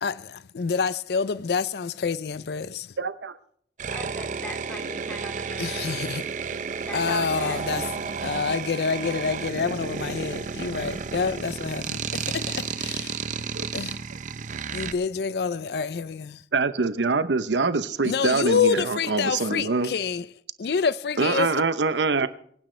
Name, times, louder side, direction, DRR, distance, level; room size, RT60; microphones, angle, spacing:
voice 1, 0.0-2.9 5.6-6.2 6.9-7.8 8.2-13.1 13.7-13.9 14.7-16.4 18.0-20.2 20.6-21.5, left 5 dB, 65° left, 0.5 m, -27 dB
voice 2, 3.0-3.4 13.6-13.7 16.5-19.9 21.2-22.3, right 4 dB, 90° right, 0.8 m, -24 dB
sound 1, 3.8-14.9, right 5 dB, 45° right, 0.6 m, -32 dB
voice 3, 3.9-6.0 6.7-7.9, left 1 dB, 10° left, 2.9 m, -40 dB
26.0 x 10.0 x 3.3 m
head